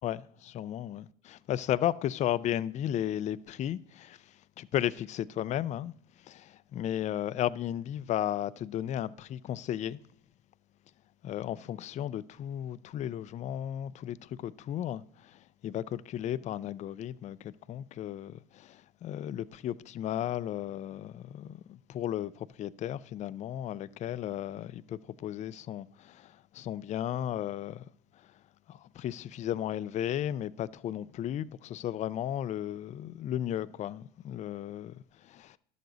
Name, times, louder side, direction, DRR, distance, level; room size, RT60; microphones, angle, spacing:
voice 1, 0.0-4.2 4.6-5.9 6.3-10.0 11.2-27.9 28.7-35.6, left 11 dB, 35° left, 0.4 m, -34 dB
10.5 x 6.8 x 3.9 m
supercardioid pair, 85°, 20 cm